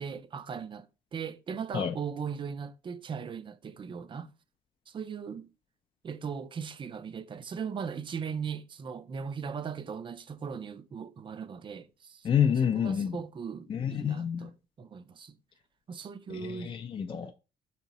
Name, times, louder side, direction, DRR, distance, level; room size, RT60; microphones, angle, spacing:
voice 1, 0.0-4.3 4.9-5.5 6.0-12.3 12.8-14.5 14.8-15.4 15.9-16.7, right 6 dB, 30° right, 0.4 m, -38 dB
voice 2, 12.2-13.2 13.7-14.5 16.3-17.3, left 8 dB, 30° left, 0.4 m, -28 dB
4.5 x 2.9 x 4.0 m
cardioid pair, 110°, 17 cm